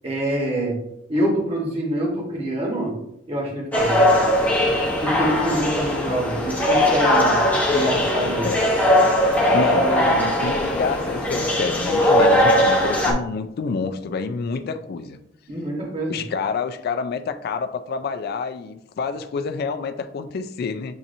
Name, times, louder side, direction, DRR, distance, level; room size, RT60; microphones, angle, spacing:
voice 1, 0.0-0.8 1.1-3.0 3.3-4.2 5.0-7.4 7.7-8.5 9.6-10.1 15.5-16.2, right 1 dB, 30° right, -3 dB, 1.3 m, -25 dB
sound 1, 3.7-13.1, left 1 dB, 10° left, 0.9 m, -19 dB
voice 2, 9.5-15.2 16.1-21.0, left 5 dB, 55° left, 9 dB, 0.3 m, -28 dB
7.1 x 2.8 x 2.6 m, 0.79 s
head